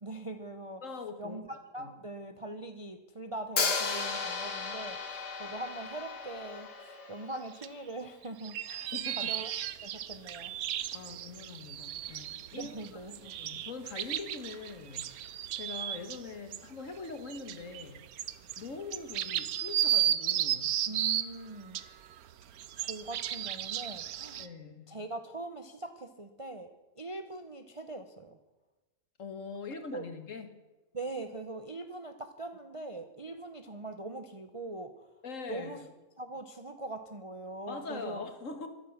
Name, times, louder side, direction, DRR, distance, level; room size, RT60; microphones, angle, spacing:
voice 1, 0.0-0.8 1.2-1.4 1.7-6.7 7.1-8.9 9.3-9.5 9.8-10.5 12.5-13.3 20.9-21.8 22.8-24.4 24.9-26.7 27.0-28.4 29.9-30.0 30.9-35.1 35.5-35.8 36.2-38.2, right 2 dB, 30° right, 7 dB, 0.6 m, -42 dB
voice 2, 0.8-1.4 1.8-1.9 8.7-9.4 10.9-18.1 18.6-20.8 24.4-25.0 29.2-30.5 35.2-35.8 37.7-38.7, left 4 dB, 50° left, 8 dB, 1.7 m, -43 dB
Hi-hat, 3.6-7.5, left 5 dB, 85° left, 2.2 m, -34 dB
sound 1, 7.6-7.7 8.2-16.2 16.5-16.7 17.1-21.3 21.7-24.5, right 11 dB, 70° right, 1.1 m, -34 dB
13.0 x 12.0 x 7.2 m, 1.1 s
omnidirectional pair, 1.7 m